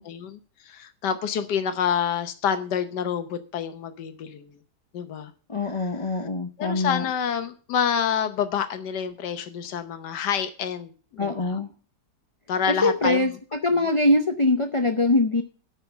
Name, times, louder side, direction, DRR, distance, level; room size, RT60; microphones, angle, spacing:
voice 1, 0.0-4.5 4.9-5.3 5.7-5.9 6.6-11.6 12.5-13.2, left 8 dB, 85° left, 9 dB, 1.5 m, -28 dB
voice 2, 5.5-7.1 11.2-11.7 12.7-15.4, left 2 dB, 35° left, 6 dB, 0.5 m, -23 dB
12.5 x 5.7 x 6.9 m, 0.39 s
omnidirectional pair, 1.8 m